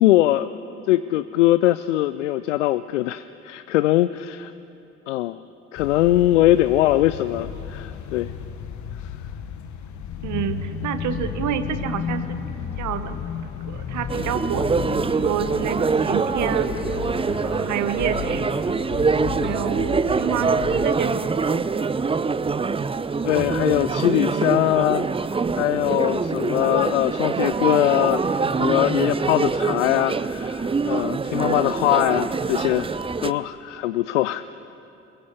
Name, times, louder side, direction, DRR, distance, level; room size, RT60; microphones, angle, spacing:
voice 1, 0.0-0.5 0.9-4.5 5.1-5.4 5.7-8.3 23.2-25.1 25.6-32.9 33.2-34.4, left 15 dB, 75° left, 15 dB, 0.5 m, -21 dB
sound 1, 5.8-20.9, left 7 dB, 50° left, 1.6 m, -33 dB
voice 2, 10.2-12.2 12.8-13.3 13.7-14.8 15.1-16.7 17.4-18.5 19.4-22.3, right 9 dB, 50° right, 11 dB, 1.3 m, -29 dB
sound 2, 14.1-33.3, right 4 dB, 15° right, 0.6 m, -24 dB
23.5 x 21.5 x 6.9 m, 2.8 s
figure-of-eight pair, 50°, 36 cm